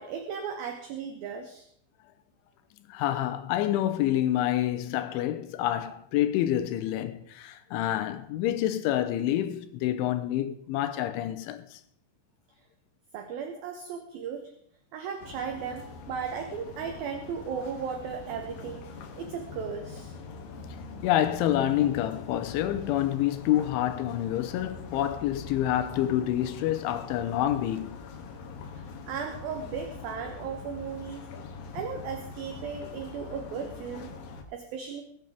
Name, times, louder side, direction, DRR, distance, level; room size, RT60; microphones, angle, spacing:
voice 1, 0.0-1.7 13.1-14.5 14.9-20.1 28.7-31.3 31.7-34.2 34.5-35.0, right 6 dB, 70° right, 2.3 m, -36 dB
voice 2, 2.9-11.8 21.0-28.0, left 12 dB, 85° left, 3.2 m, -27 dB
sound 1, 15.2-34.4, left 4 dB, 60° left, 2.6 m, -43 dB
22.0 x 9.3 x 3.6 m
omnidirectional pair, 5.6 m